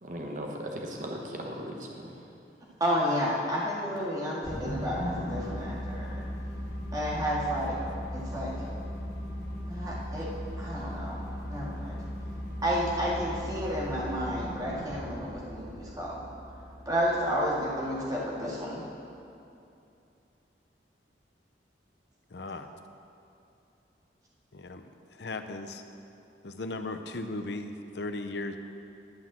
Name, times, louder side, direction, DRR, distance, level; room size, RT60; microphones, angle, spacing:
voice 1, 0.0-2.1, equal, 45° right, 0 dB, 1.1 m, -37 dB
voice 2, 2.8-6.2 6.9-7.8 8.1-8.6 9.7-10.3 10.6-11.2 11.5-12.0 12.6-16.2 16.9-18.8, equal, 20° right, -5 dB, 1.9 m, -31 dB
sound 1, 4.4-18.9, left 1 dB, 50° left, 1.8 m, -38 dB
voice 3, 22.3-22.7 24.5-24.8 25.1-25.8 26.4-28.6, left 2 dB, 70° left, 7 dB, 0.7 m, -37 dB
11.5 x 5.9 x 7.4 m, 2.7 s
head